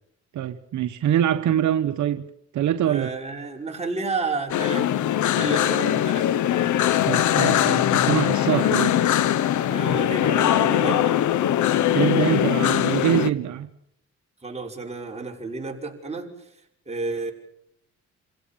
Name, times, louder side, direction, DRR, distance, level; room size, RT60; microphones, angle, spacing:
voice 1, 0.3-2.2 2.5-3.1 7.0-8.9 11.9-13.7, right 10 dB, 75° right, 1.2 m, -24 dB
voice 2, 2.8-6.3 8.5-8.9 9.7-11.2 14.4-17.3, right 3 dB, 20° right, 6.1 m, -31 dB
sound 1, 4.5-13.3, left 11 dB, 75° left, 1.1 m, -21 dB
27.5 x 16.5 x 7.3 m
cardioid pair, 90°, 30 cm